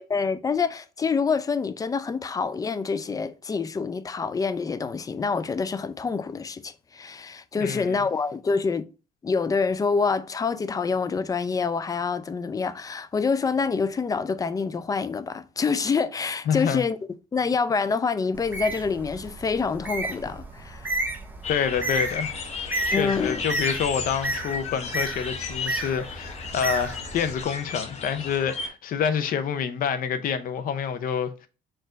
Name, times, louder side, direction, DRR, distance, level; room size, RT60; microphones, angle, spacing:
voice 1, 0.0-8.8 9.2-17.0 17.3-21.0 22.9-23.4, left 5 dB, 20° left, 0.4 m, -26 dB
voice 2, 7.5-8.0 16.5-16.8 21.5-22.4 23.0-31.5, left 7 dB, 55° left, 0.6 m, -27 dB
Bird, 18.3-27.4, right 1 dB, 10° right, 0.8 m, -32 dB
sound 1, 21.4-28.7, left 5 dB, 40° left, 0.9 m, -34 dB
4.5 x 2.5 x 4.3 m
cardioid pair, 110°, 17 cm